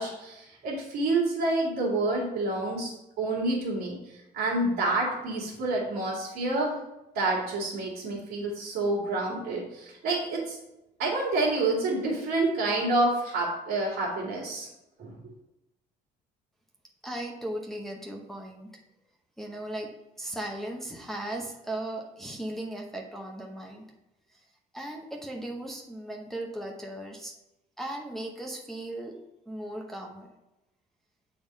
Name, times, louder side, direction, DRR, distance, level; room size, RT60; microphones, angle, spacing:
voice 1, 0.0-6.8 7.1-10.6 11.0-14.7 15.0-15.2, right 2 dB, 75° right, -7 dB, 2.1 m, -28 dB
voice 2, 17.0-18.7 19.4-19.9 20.2-23.9 24.3-24.4 24.7-27.3 27.8-29.2 29.5-30.3, right 1 dB, ahead, -1 dB, 0.9 m, -37 dB
6.9 x 3.6 x 5.3 m, 0.94 s
cardioid pair, 110°, 17 cm